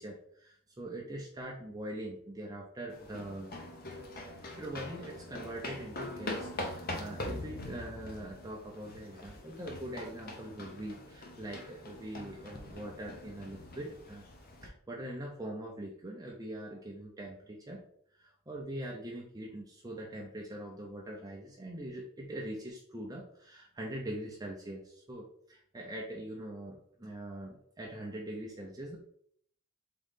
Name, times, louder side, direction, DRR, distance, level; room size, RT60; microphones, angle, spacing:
voice 1, 0.0-3.5 4.4-14.3 14.6-17.8 18.2-29.0, right 1 dB, 15° right, -2 dB, 0.6 m, -42 dB
sound 1, 2.9-14.7, left 1 dB, 40° left, 0.8 m, -43 dB
3.8 x 3.8 x 3.6 m, 0.64 s
head